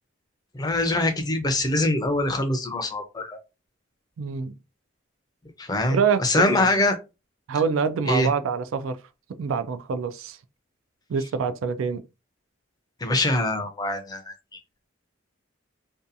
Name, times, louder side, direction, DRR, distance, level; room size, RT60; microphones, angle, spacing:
voice 1, 0.5-3.4 5.6-7.0 8.1-8.3 13.0-14.6, left 2 dB, 20° left, 0.4 m, -24 dB
voice 2, 4.2-4.5 5.9-6.7 7.5-9.0 9.4-10.4 11.1-12.0, right 6 dB, 75° right, 0.3 m, -26 dB
2.7 x 2.3 x 2.5 m
head